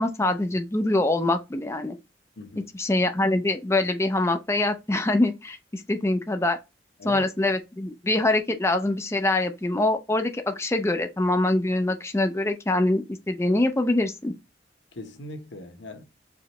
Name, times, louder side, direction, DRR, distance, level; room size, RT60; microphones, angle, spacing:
voice 1, 0.0-2.0 2.7-6.6 7.0-14.3, left 2 dB, 15° left, 0.5 m, -24 dB
voice 2, 2.4-2.7 7.0-7.3 14.9-16.0, left 1 dB, 85° left, 1.1 m, -40 dB
4.9 x 3.2 x 3.1 m
head